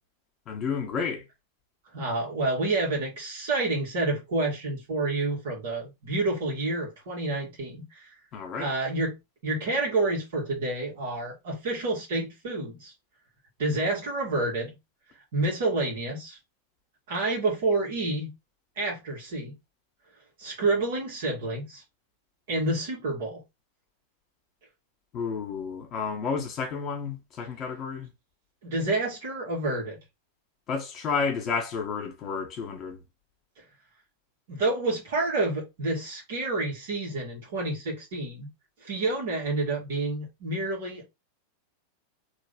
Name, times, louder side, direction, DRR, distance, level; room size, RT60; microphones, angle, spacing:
voice 1, 0.5-1.2 8.3-8.7 25.1-28.1 30.7-33.0, left 5 dB, 30° left, 1.6 m, -31 dB
voice 2, 1.9-8.1 8.6-9.2 9.4-12.9 13.6-14.8 15.3-16.4 17.1-18.3 18.8-19.5 20.4-21.8 22.5-23.4 28.6-30.0 34.5-38.5 38.8-41.1, right 2 dB, 55° right, 2.1 m, -29 dB
3.8 x 3.3 x 3.6 m
figure-of-eight pair, 90°, 0 cm